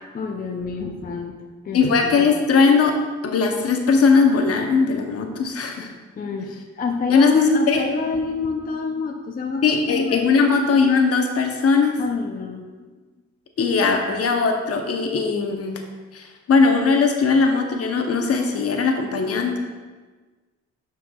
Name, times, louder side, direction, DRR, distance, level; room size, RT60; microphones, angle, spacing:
voice 1, 0.1-1.4 1.6-2.3 6.2-10.3 12.0-12.7, left 4 dB, 30° left, 2 dB, 0.6 m, -28 dB
voice 2, 1.7-2.9 3.2-5.9 7.1-7.8 9.6-12.0 13.6-15.8 16.1-19.6, left 4 dB, 50° left, 4 dB, 0.9 m, -19 dB
11.5 x 4.6 x 2.3 m, 1.3 s
cardioid pair, 90°, 30 cm